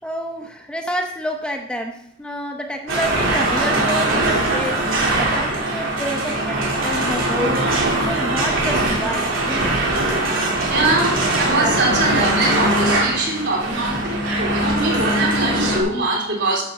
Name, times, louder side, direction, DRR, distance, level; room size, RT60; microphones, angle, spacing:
voice 1, 0.0-4.9 5.1-9.7, equal, 5° left, 2 dB, 0.7 m, -28 dB
sound 1, 2.9-15.8, right 1 dB, 85° right, 3.4 m, -21 dB
voice 2, 10.7-16.6, right 2 dB, 60° right, -1 dB, 3.7 m, -22 dB
10.0 x 5.9 x 7.1 m, 0.73 s
head